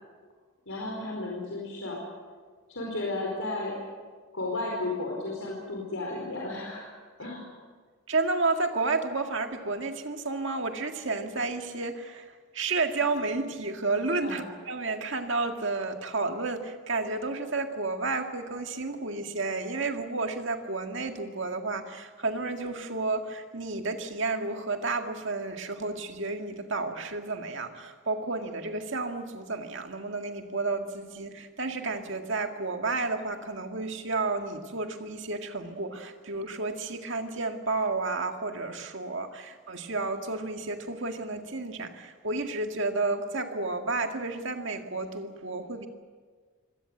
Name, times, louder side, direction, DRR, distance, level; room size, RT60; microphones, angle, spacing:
voice 1, 0.7-2.0 2.7-3.7 4.3-6.9 7.2-7.4 14.2-14.4, left 2 dB, 75° left, -2 dB, 4.6 m, -33 dB
voice 2, 8.1-45.9, right 3 dB, 60° right, 5 dB, 2.0 m, -31 dB
25.0 x 17.5 x 7.9 m, 1.5 s
head